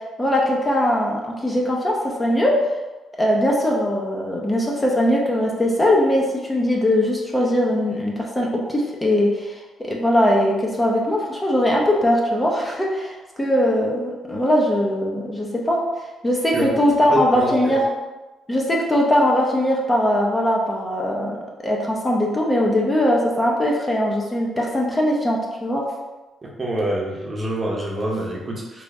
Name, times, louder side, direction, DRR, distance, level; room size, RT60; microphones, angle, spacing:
voice 1, 0.2-2.5 3.2-15.8 16.2-17.8 18.5-25.8, left 1 dB, 20° left, -2 dB, 0.6 m, -20 dB
voice 2, 17.1-17.8 26.4-28.8, right 1 dB, 30° right, -2 dB, 0.8 m, -26 dB
3.3 x 2.5 x 3.5 m, 1.1 s
cardioid pair, 90°, 0 cm